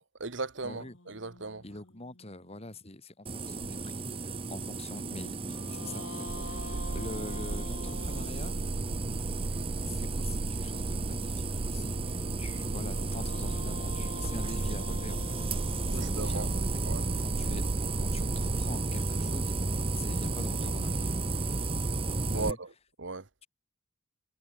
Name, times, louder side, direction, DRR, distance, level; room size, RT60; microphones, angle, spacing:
voice 1, 0.0-1.6 15.8-16.5 16.8-17.0 22.2-22.7 23.0-23.3, right 3 dB, 70° right, 1.5 m, -37 dB
sound 1, 0.6-3.0 5.2-9.4 11.5-17.7, left 3 dB, 85° left, 2.6 m, -47 dB
voice 2, 0.6-1.0 1.6-8.6 9.8-15.5 15.9-16.8 17.2-17.6 18.0-21.2 22.3-22.6, left 2 dB, 35° left, 2.8 m, -44 dB
sound 2, 3.3-22.5, right 3 dB, 30° right, 0.9 m, -33 dB
sound 3, 6.3-18.8, right 3 dB, 55° right, 0.7 m, -37 dB
head